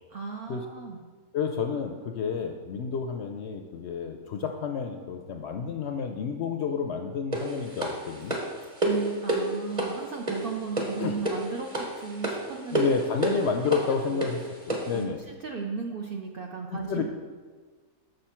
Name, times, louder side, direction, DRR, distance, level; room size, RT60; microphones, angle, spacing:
voice 1, 0.1-1.0 8.8-12.9 14.1-14.2 14.9-17.0, right 5 dB, 60° right, 1 dB, 0.6 m, -35 dB
voice 2, 1.3-8.4 11.0-11.2 12.7-14.4 14.7-15.2 16.7-17.0, left 6 dB, 65° left, 5 dB, 0.7 m, -30 dB
sound 1, 7.3-15.0, right 2 dB, 25° right, 1.0 m, -30 dB
6.6 x 6.3 x 4.3 m, 1.4 s
omnidirectional pair, 1.5 m